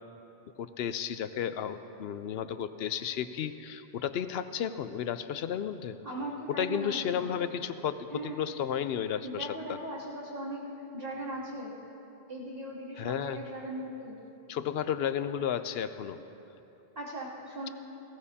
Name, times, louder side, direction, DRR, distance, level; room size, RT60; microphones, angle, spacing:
voice 1, 0.6-6.0 6.5-9.8 13.0-13.4 14.5-16.2, left 9 dB, 75° left, 11 dB, 0.8 m, -33 dB
voice 2, 6.0-7.3 8.1-8.4 9.2-10.6 10.9-11.7 12.3-14.2 16.9-17.7, right 1 dB, 60° right, -6 dB, 3.0 m, -38 dB
19.0 x 17.0 x 2.8 m, 3.0 s
omnidirectional pair, 1.1 m